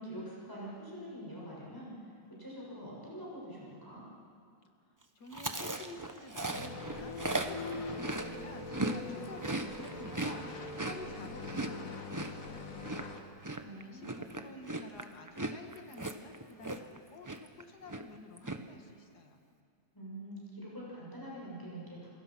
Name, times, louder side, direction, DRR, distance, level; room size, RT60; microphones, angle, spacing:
voice 1, 0.0-4.1 13.6-14.2 19.9-22.1, equal, 10° left, -5 dB, 6.4 m, -45 dB
voice 2, 5.2-13.2 13.7-19.4, left 3 dB, 85° left, 4 dB, 2.4 m, -51 dB
Chewing mastication, 5.3-9.0 9.2-17.0 17.2-17.6 17.9-18.6, right 2 dB, 15° right, 0.8 m, -38 dB
sound 1, 6.5-13.2, left 3 dB, 55° left, 2.2 m, -43 dB
27.5 x 21.0 x 6.1 m, 2.4 s
omnidirectional pair, 1.7 m